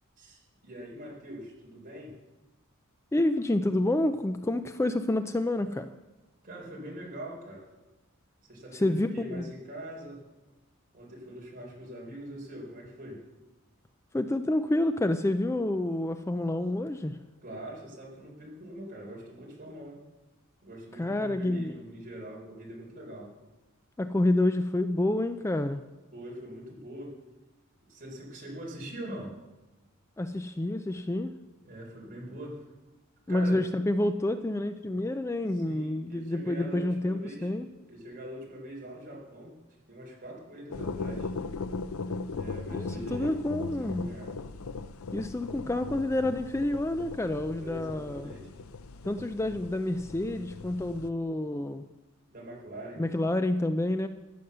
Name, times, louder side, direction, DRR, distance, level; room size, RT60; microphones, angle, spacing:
voice 1, 0.2-2.1 6.4-7.6 8.5-10.2 10.9-13.2 17.4-20.0 20.6-23.3 26.1-27.2 27.9-29.4 31.6-32.6 33.3-33.6 35.5-37.5 37.9-39.5 39.9-41.3 42.3-43.4 43.8-44.3 47.6-48.6 52.3-53.0, right 1 dB, 40° right, -2 dB, 4.4 m, -43 dB
voice 2, 3.1-5.9 8.7-9.5 14.1-17.2 21.0-21.7 24.0-25.8 30.2-31.3 33.3-37.7 42.8-44.0 45.1-48.3 49.0-51.9 53.0-54.1, left 1 dB, 15° left, 9 dB, 0.4 m, -28 dB
sound 1, 40.7-51.1, left 4 dB, 80° left, 0.6 m, -38 dB
14.5 x 9.4 x 6.7 m, 1.1 s
head